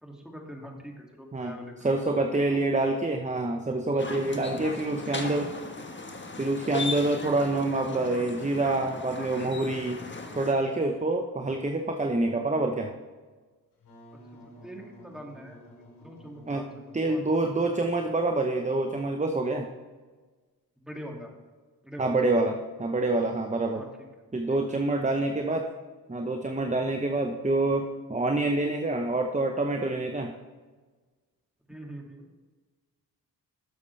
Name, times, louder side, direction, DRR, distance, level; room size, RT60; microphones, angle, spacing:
voice 1, 0.0-2.1 2.3-2.6 14.6-15.6 16.0-17.2 20.8-21.3 21.8-22.2 23.7-23.9 24.5-24.6 31.7-32.3, equal, ahead, 0 dB, 2.5 m, -43 dB
voice 2, 1.3-5.5 6.4-10.0 10.3-12.9 16.5-16.7 16.9-19.7 22.0-22.5 22.8-23.9 24.3-25.7 26.1-30.3, right 2 dB, 20° right, 4 dB, 1.0 m, -27 dB
sound 1, 4.0-10.5, left 3 dB, 30° left, 1.4 m, -37 dB
Wind instrument woodwind instrument, 13.7-18.3, equal, 80° left, 3.0 m, -52 dB
12.0 x 7.0 x 3.4 m, 1.4 s
supercardioid pair, 45°, 39 cm